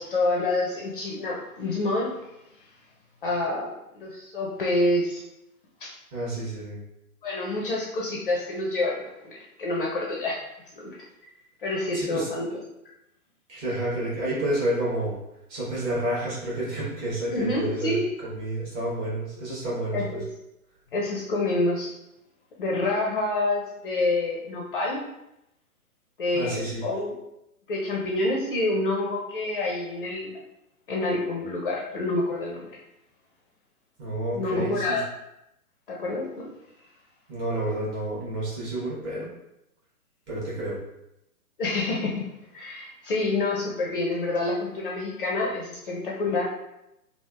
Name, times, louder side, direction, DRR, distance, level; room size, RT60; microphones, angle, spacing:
voice 1, 0.0-2.2 3.2-5.2 5.8-5.9 7.2-10.4 10.8-11.0 11.6-12.6 17.3-18.1 19.9-20.2 20.9-21.9 22.6-25.0 26.2-27.1 27.7-30.3 30.9-32.6 34.3-35.1 35.9-36.5 41.6-42.2 42.5-46.4, left 2 dB, 40° left, -2 dB, 0.5 m, -27 dB
voice 2, 6.1-6.8 11.9-12.3 13.5-15.2 15.5-18.0 18.3-20.2 26.3-26.8 34.0-35.0 37.3-39.3 40.3-40.8, right 1 dB, 20° right, -8 dB, 1.1 m, -29 dB
3.2 x 2.4 x 2.2 m, 0.86 s
hypercardioid pair, 130°, 45 cm